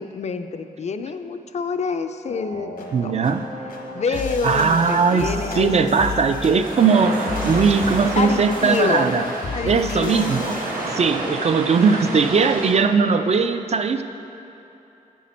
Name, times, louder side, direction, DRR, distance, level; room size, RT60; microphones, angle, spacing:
voice 1, 0.0-2.7 3.0-3.1 3.9-5.9 8.2-10.6 11.2-11.4, left 5 dB, 50° left, 8 dB, 0.4 m, -27 dB
sound 1, 2.3-11.5, left 2 dB, 90° left, 1.3 m, -33 dB
voice 2, 2.9-3.4 4.4-9.2 9.6-10.6 10.9-14.0, right 5 dB, 45° right, 8 dB, 0.4 m, -19 dB
sound 2, 6.6-12.7, right 2 dB, 80° right, 1.4 m, -30 dB
9.2 x 9.2 x 4.3 m, 3.0 s
wide cardioid pair, 175°, 15 cm